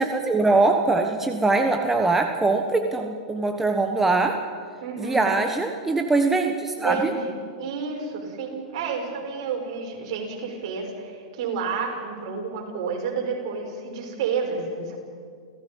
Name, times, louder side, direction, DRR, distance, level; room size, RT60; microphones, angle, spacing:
voice 1, 0.0-4.4 5.0-7.1, right 3 dB, 10° right, 4 dB, 1.3 m, -22 dB
voice 2, 4.8-5.3 6.8-15.0, right 5 dB, 60° right, 0 dB, 6.2 m, -30 dB
29.5 x 16.5 x 5.6 m, 2.2 s
hypercardioid pair, 110°, 3 cm